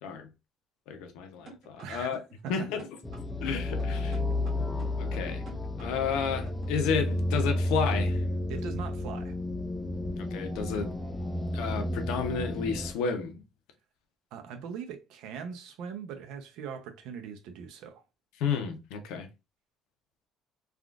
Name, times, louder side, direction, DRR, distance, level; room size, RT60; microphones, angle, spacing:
voice 1, 0.9-2.2 2.5-2.9 3.4-4.2 5.0-5.4 5.8-8.2 10.2-11.0 11.5-13.4 18.4-19.3, left 6 dB, 90° left, 0.7 m, -31 dB
sound 1, 1.5-6.8, right 2 dB, 45° right, 1.4 m, -48 dB
voice 2, 1.8-2.7 8.5-9.3 14.3-18.0, right 7 dB, 80° right, 0.6 m, -41 dB
sound 2, 3.0-12.9, left 1 dB, 10° left, 0.4 m, -31 dB
3.5 x 2.4 x 2.4 m
cardioid pair, 145°, 0 cm